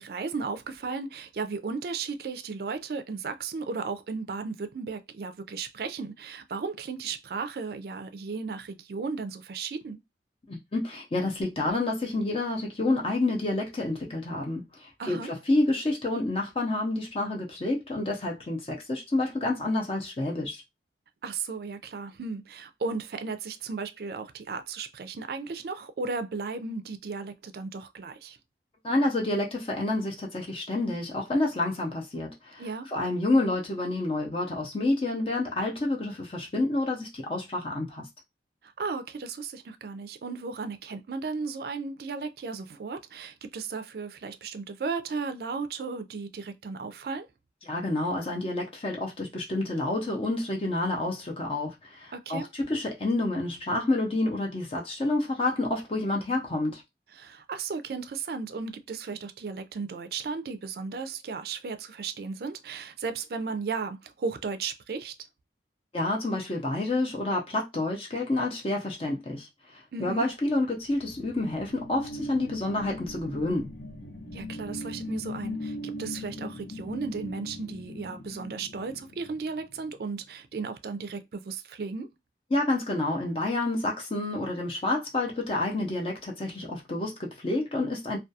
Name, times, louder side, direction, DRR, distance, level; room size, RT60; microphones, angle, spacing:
voice 1, 0.0-10.0 15.0-15.3 21.2-28.4 32.6-32.9 38.8-47.3 52.1-52.5 57.1-65.1 69.9-70.3 74.3-82.1, right 4 dB, 55° right, 0.4 m, -35 dB
voice 2, 10.5-20.6 28.8-32.6 32.9-38.1 47.7-56.8 65.9-69.5 70.0-73.7 82.5-88.2, left 2 dB, 30° left, 0.5 m, -29 dB
sound 1, 70.6-79.9, left 1 dB, 70° left, 0.7 m, -40 dB
2.3 x 2.2 x 2.7 m
head